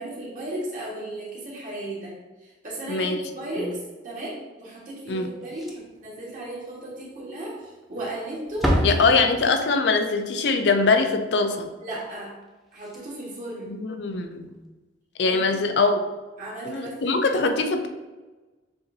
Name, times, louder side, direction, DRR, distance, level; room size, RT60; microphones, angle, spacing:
voice 1, 0.0-2.1 2.4-9.0 11.8-12.3 12.7-13.8 15.2-15.6 16.4-17.2, right 1 dB, 45° right, -5 dB, 1.4 m, -35 dB
Slam, 5.4-6.1 6.4-6.5 6.9-7.0 7.8-8.2 8.4-9.7 12.4-12.5 12.8-13.0 14.5-14.6, equal, ahead, 0.5 m, -27 dB
voice 2, 8.8-11.7 13.7-14.5 15.2-16.0 16.7-17.9, left 4 dB, 70° left, 6 dB, 0.4 m, -22 dB
6.8 x 2.6 x 2.6 m, 1.2 s
head